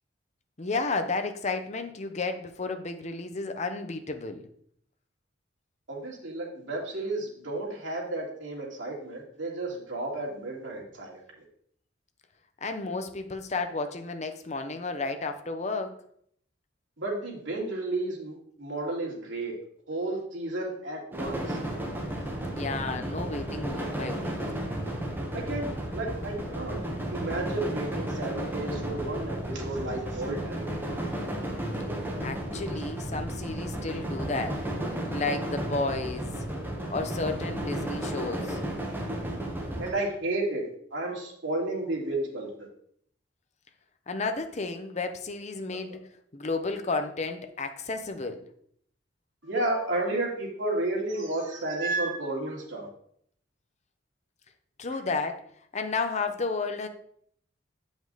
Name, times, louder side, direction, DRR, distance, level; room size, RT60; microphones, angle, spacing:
voice 1, 0.6-4.5 12.6-16.0 22.5-24.4 32.2-34.6 35.1-36.3 36.9-38.6 44.1-48.4 54.8-55.4 55.7-56.9, left 3 dB, 35° left, 0.7 m, -32 dB
voice 2, 5.9-11.4 17.0-19.5 19.9-21.6 25.3-26.8 27.1-30.9 39.8-42.7 45.7-45.8 49.4-52.9 54.9-55.0, right 2 dB, 85° right, 2.3 m, -32 dB
sound 1, 21.1-39.9, right 1 dB, 10° right, 1.2 m, -33 dB
7.7 x 5.2 x 4.0 m
head